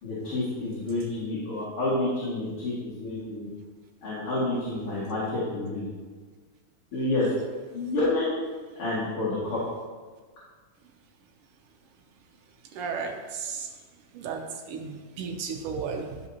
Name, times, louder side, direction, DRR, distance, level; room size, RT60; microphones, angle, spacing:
voice 1, 0.0-3.5 4.0-5.8 6.9-7.3 7.7-8.3 8.8-9.6, left 2 dB, 90° left, -10 dB, 3.0 m, -29 dB
voice 2, 12.7-13.7 14.1-16.2, right 5 dB, 90° right, 2 dB, 1.7 m, -34 dB
11.5 x 5.5 x 2.8 m, 1.5 s
omnidirectional pair, 2.4 m